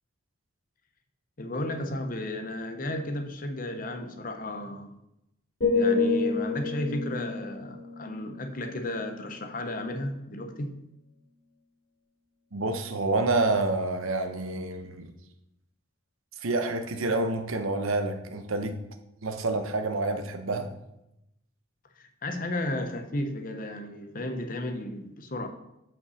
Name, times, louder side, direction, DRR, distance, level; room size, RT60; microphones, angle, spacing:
voice 1, 1.4-5.0 5.7-10.8 22.0-25.5, left 1 dB, 40° left, 0.8 m, -33 dB
sound 1, 5.6-9.6 9.9-10.3, left 4 dB, 60° left, 2.6 m, -29 dB
voice 2, 12.5-15.1 16.4-18.8 19.2-20.7, right 2 dB, 90° right, 0.9 m, -28 dB
5.7 x 5.4 x 6.2 m
head